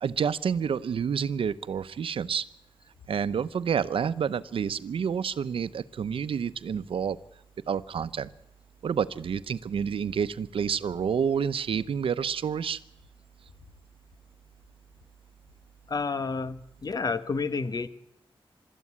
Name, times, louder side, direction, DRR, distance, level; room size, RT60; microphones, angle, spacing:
voice 1, 0.0-2.5 3.1-7.2 7.7-8.3 8.8-12.8, right 7 dB, 85° right, 14 dB, 0.8 m, -29 dB
voice 2, 15.9-17.9, left 4 dB, 45° left, 12 dB, 1.3 m, -30 dB
24.0 x 13.5 x 9.7 m, 0.80 s
wide cardioid pair, 140°, 9 cm